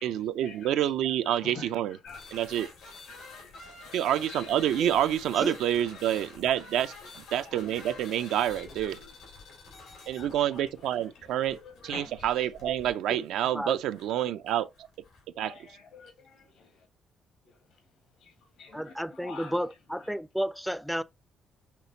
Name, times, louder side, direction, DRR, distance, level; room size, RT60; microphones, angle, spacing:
voice 1, 0.0-2.0 2.3-2.7 3.9-6.9 7.3-9.0 10.1-14.9 15.4-15.6, right 11 dB, 85° right, 0.4 m, -28 dB
voice 2, 1.3-1.7 2.0-2.2 3.1-3.5 4.3-4.4 9.0-9.1 10.2-10.3 11.4-12.1 15.4-16.5 18.2-18.3 18.6-19.5, left 5 dB, 70° left, 1.4 m, -46 dB
sound 1, 2.1-15.3, left 4 dB, 90° left, 2.4 m, -49 dB
voice 3, 18.7-21.0, equal, ahead, 0.3 m, -32 dB
5.9 x 3.1 x 2.7 m
cardioid pair, 90°, 0 cm